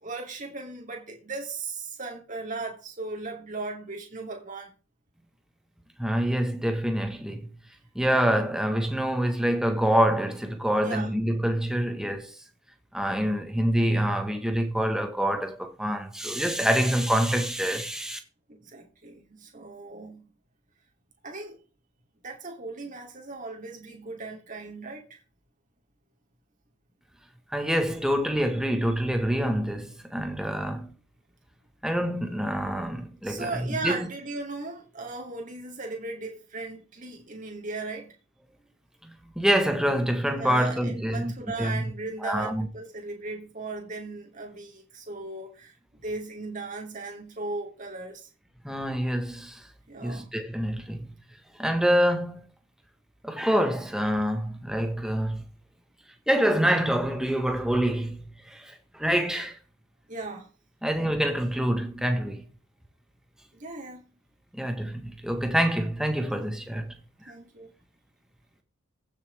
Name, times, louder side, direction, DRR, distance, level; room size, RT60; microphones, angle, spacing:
voice 1, 0.0-4.7 10.8-11.1 18.5-20.3 21.2-21.6 22.2-25.2 33.2-38.1 40.2-45.7 46.0-48.3 49.9-50.3 60.1-60.5 63.5-64.1 66.3-66.5 67.3-67.7, right 3 dB, 40° right, 3.0 m, -37 dB
voice 2, 6.0-7.5 7.9-12.3 12.9-18.2 27.5-30.9 31.8-34.1 39.3-41.3 41.6-41.8 42.2-42.7 48.6-49.6 50.0-51.1 51.6-52.4 53.2-55.4 56.3-59.6 60.8-62.4 64.5-66.9, equal, 5° right, 1.5 m, -26 dB
15.5 x 6.9 x 3.6 m
head